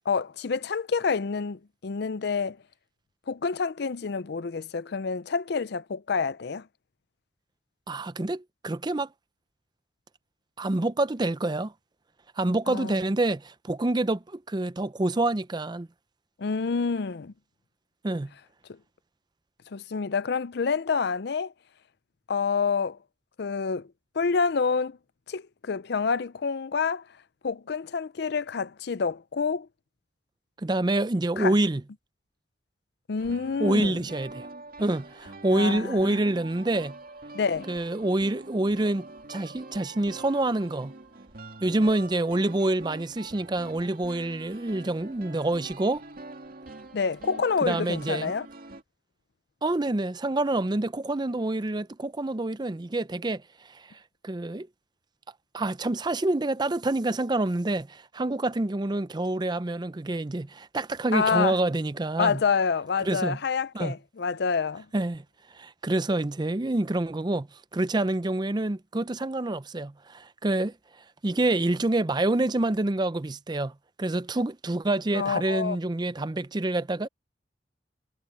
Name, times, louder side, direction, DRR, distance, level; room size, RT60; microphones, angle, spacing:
voice 1, 0.1-2.6 3.3-6.7 12.7-12.9 16.4-17.3 18.7-18.8 19.7-21.5 22.3-23.0 23.4-23.9 24.1-25.0 25.3-27.0 27.4-29.7 31.4-31.5 33.1-34.0 35.5-36.2 37.3-37.7 46.9-48.5 61.1-61.6 62.2-64.9 75.1-75.8, left 5 dB, 60° left, 0.5 m, -28 dB
voice 2, 7.9-9.1 10.6-11.7 12.4-15.9 18.0-18.3 30.6-31.8 33.6-34.5 34.8-36.9 37.7-40.9 41.6-46.0 47.6-48.3 49.6-54.7 55.5-62.4 63.0-63.4 63.7-63.9 64.9-65.2 65.5-67.5 67.7-70.7 71.2-77.1, right 2 dB, 25° right, 0.5 m, -27 dB
sound 1, 33.2-48.8, right 2 dB, 50° right, 2.3 m, -45 dB
head